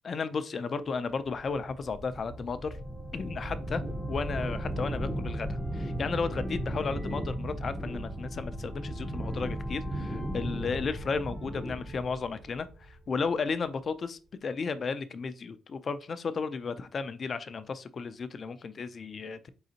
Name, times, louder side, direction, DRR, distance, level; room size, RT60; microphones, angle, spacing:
voice 1, 0.0-2.8 3.1-3.8 4.1-19.5, left 5 dB, 45° left, 12 dB, 0.4 m, -34 dB
sound 1, 1.3-13.3, right 1 dB, 10° right, 0.6 m, -36 dB
4.1 x 3.8 x 2.8 m, 0.35 s
cardioid pair, 90°, 0 cm